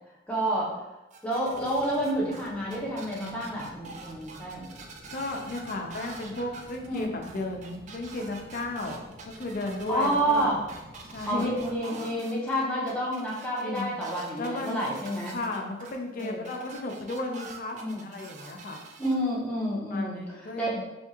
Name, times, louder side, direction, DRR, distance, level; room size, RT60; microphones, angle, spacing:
voice 1, 0.3-0.9 1.2-4.7 6.8-7.1 9.9-10.6 11.2-15.4 16.1-16.4 17.7-18.0 19.0-20.8, right 1 dB, 5° left, -6 dB, 0.8 m, -29 dB
sound 1, 1.1-19.1, right 4 dB, 40° right, 0.4 m, -46 dB
sound 2, 1.5-11.8, equal, 85° right, 1.2 m, -51 dB
voice 2, 5.1-9.0 9.2-10.5 11.1-11.7 13.6-14.0 14.4-14.9 15.3-17.8 18.0-18.8 19.9-20.8, left 2 dB, 50° left, 2 dB, 0.5 m, -34 dB
3.5 x 2.8 x 2.8 m, 0.98 s
head